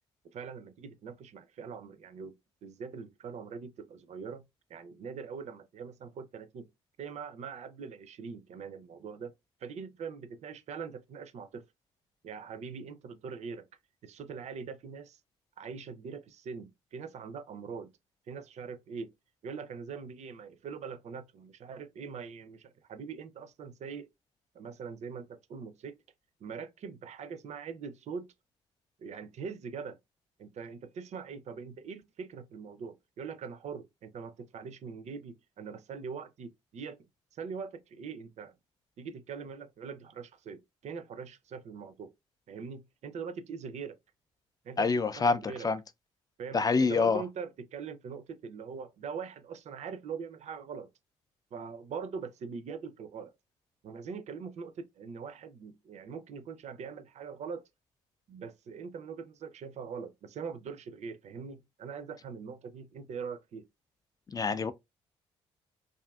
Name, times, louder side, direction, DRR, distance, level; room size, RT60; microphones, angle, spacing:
voice 1, 0.2-2.3 2.6-6.7 7.0-9.3 9.6-11.7 12.2-13.7 14.0-15.2 15.6-17.9 18.3-19.1 19.4-24.1 24.5-26.0 26.4-28.3 29.0-30.0 30.4-37.0 37.3-38.6 39.0-42.1 42.5-44.0 44.6-45.7 46.4-50.9 51.5-53.3 53.8-57.7 58.3-63.7, right 6 dB, 55° right, 0.4 m, -42 dB
voice 2, 44.8-45.8 46.5-47.2 64.3-64.7, left 4 dB, 25° left, 0.4 m, -26 dB
2.6 x 2.4 x 2.3 m
hypercardioid pair, 50°, 14 cm